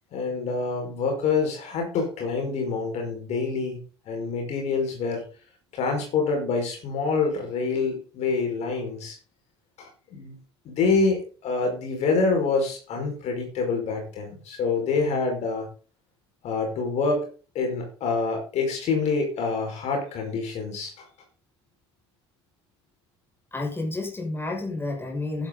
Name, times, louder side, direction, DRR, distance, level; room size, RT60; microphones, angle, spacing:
voice 1, 0.1-3.8 4.1-5.2 5.7-9.2 9.8-10.3 10.6-15.7 16.4-17.3 17.5-21.1, left 4 dB, 50° left, 5.0 m, -26 dB
voice 2, 23.5-25.5, left 2 dB, 15° left, 6.2 m, -30 dB
12.0 x 10.5 x 3.9 m
figure-of-eight pair, 55°, 14 cm